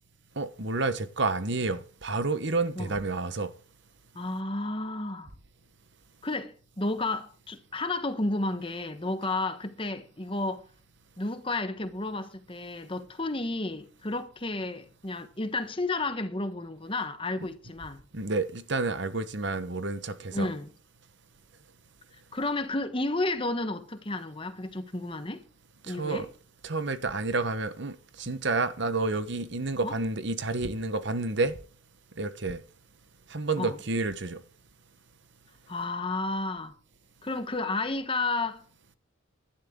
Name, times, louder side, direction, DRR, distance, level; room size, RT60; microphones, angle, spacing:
voice 1, 0.4-3.5 18.1-20.5 25.9-26.3 26.6-31.6 32.2-32.6 33.3-34.4, right 3 dB, 55° right, 1.2 m, -30 dB
voice 2, 4.1-5.3 6.2-10.7 11.2-18.0 20.3-20.7 22.3-25.4 25.9-26.2 29.8-29.9 33.6-33.8 35.7-36.7 37.2-38.6, left 2 dB, 25° left, 1.2 m, -32 dB
17.5 x 12.0 x 3.8 m
head